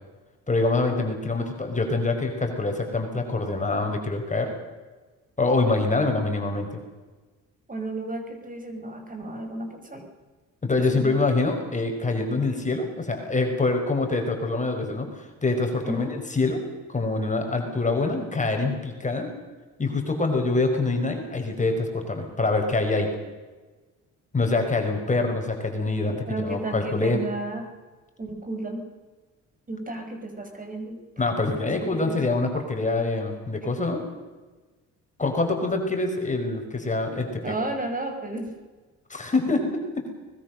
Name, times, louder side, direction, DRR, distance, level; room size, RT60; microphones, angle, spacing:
voice 1, 0.5-4.5 5.4-6.8 10.6-16.1 16.3-16.6 16.9-19.3 19.8-23.1 24.3-27.2 31.2-34.0 35.2-37.5 39.1-40.1, left 3 dB, 25° left, 4 dB, 5.3 m, -25 dB
voice 2, 7.7-10.0 10.9-11.2 15.8-16.1 26.3-27.7 28.2-28.8 29.7-31.0 31.4-32.2 37.4-38.6, right 2 dB, 25° right, 5 dB, 6.1 m, -33 dB
24.0 x 21.0 x 6.7 m, 1.3 s
cardioid pair, 90°, 30 cm